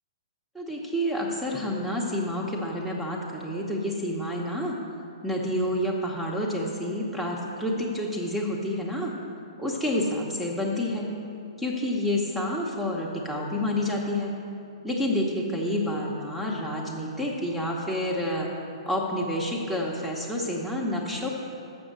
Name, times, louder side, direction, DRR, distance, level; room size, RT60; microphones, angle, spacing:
voice 1, 0.5-4.7 5.2-9.1 9.6-11.1 11.6-14.3 14.8-18.5 18.9-21.3, left 1 dB, 5° right, -2 dB, 0.9 m, -29 dB
7.1 x 6.1 x 6.7 m, 2.7 s
hypercardioid pair, 125°, 3 cm